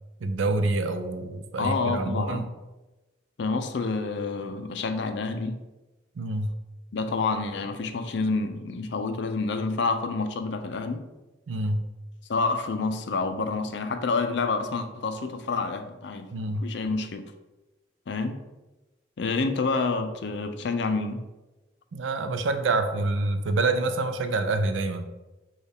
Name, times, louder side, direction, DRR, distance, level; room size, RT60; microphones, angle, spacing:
voice 1, 0.2-2.4 6.2-6.5 11.5-11.8 16.3-16.7 21.9-25.1, right 2 dB, 90° right, 8 dB, 0.5 m, -27 dB
voice 2, 1.6-2.5 3.4-5.6 6.9-11.0 12.3-16.3 16.6-17.3 18.1-18.4 19.2-21.2, left 3 dB, 65° left, 8 dB, 0.4 m, -28 dB
6.3 x 2.4 x 3.5 m, 1.1 s
head